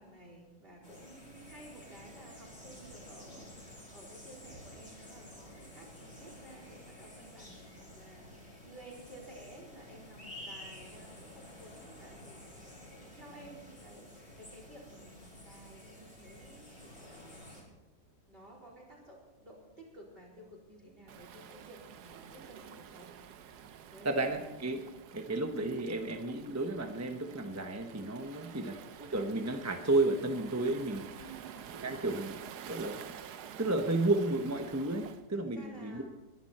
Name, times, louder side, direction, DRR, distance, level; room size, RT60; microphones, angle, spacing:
voice 1, 0.0-17.4 18.3-23.1 23.9-24.3 28.4-28.6 31.2-31.5 35.3-36.0, right 1 dB, 30° right, -2 dB, 4.6 m, -54 dB
sound 1, 0.8-17.6, left 1 dB, 30° left, 4.8 m, -51 dB
Waves surf, 21.1-35.2, right 9 dB, 70° right, 1.3 m, -49 dB
voice 2, 24.0-24.8 25.1-31.1 31.7-32.4 32.7-33.0 33.6-36.0, right 2 dB, 10° right, 5 dB, 0.8 m, -32 dB
22.0 x 11.5 x 4.4 m, 1.0 s
omnidirectional pair, 1.9 m